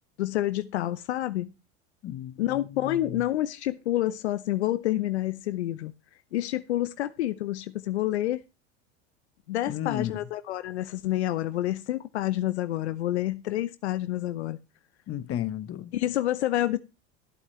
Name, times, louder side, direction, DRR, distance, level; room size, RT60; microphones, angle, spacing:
voice 1, 0.2-1.5 2.4-5.9 6.3-8.4 9.5-14.6 15.9-16.8, left 14 dB, 85° left, 0.9 m, -28 dB
voice 2, 2.0-3.2 9.7-10.3 15.1-15.9, left 11 dB, 45° left, 1.1 m, -34 dB
14.0 x 8.3 x 3.2 m
hypercardioid pair, 85°, 33 cm